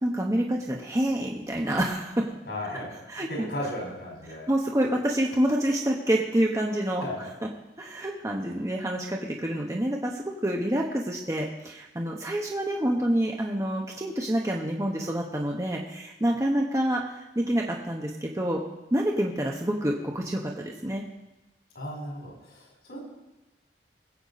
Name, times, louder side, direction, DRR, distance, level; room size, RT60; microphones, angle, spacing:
voice 1, 0.0-2.3 3.1-3.5 4.5-7.0 7.8-18.6 18.9-21.0, right 1 dB, 20° right, -1 dB, 1.0 m, -27 dB
voice 2, 2.4-4.5 7.0-7.3 21.7-23.0, left 1 dB, 75° left, -1 dB, 4.8 m, -36 dB
21.0 x 8.0 x 4.1 m, 1.0 s
head